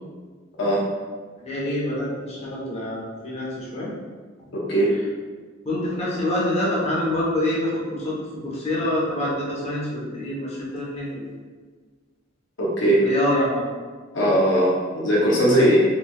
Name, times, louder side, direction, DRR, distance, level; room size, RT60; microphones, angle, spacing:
voice 1, 1.4-3.9 5.6-8.1 8.4-11.3 13.0-13.6 15.5-15.6, left 1 dB, 35° left, -6 dB, 1.0 m, -26 dB
voice 2, 4.5-5.0 12.6-13.1 14.1-15.8, right 1 dB, 70° left, -5 dB, 0.8 m, -19 dB
4.2 x 3.4 x 2.2 m, 1.5 s
head